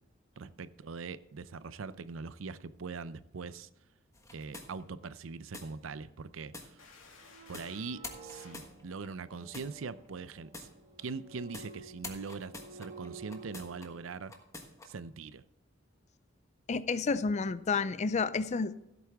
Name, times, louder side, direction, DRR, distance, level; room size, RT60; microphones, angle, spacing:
voice 1, 0.4-3.7 4.3-6.8 7.5-10.7 11.0-14.3 14.8-15.4, right 4 dB, 75° right, 0.5 m, -42 dB
sound 1, 4.1-5.1 5.5-5.7 6.5-6.7 7.5-7.7 8.0-9.1 9.5-9.7 10.5-10.7 11.5-11.7 12.0-13.9 14.3-14.9, left 2 dB, 15° left, 1.4 m, -46 dB
sound 2, 6.8-7.9 8.3-8.7, left 4 dB, 85° left, 2.6 m, -56 dB
sound 3, 7.2-14.2, right 3 dB, 35° right, 1.4 m, -52 dB
voice 2, 16.7-18.8, left 4 dB, 35° left, 0.4 m, -30 dB
15.0 x 8.3 x 3.5 m
head